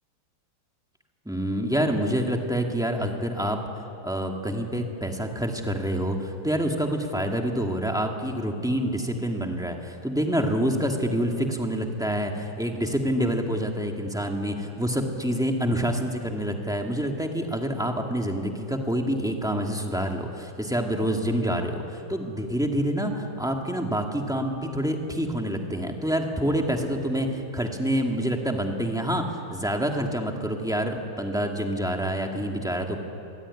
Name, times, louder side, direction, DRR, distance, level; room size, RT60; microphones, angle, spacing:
voice 1, 1.3-3.6 4.0-33.0, equal, ahead, 2 dB, 2.0 m, -27 dB
26.0 x 22.5 x 9.8 m, 2.9 s
omnidirectional pair, 2.2 m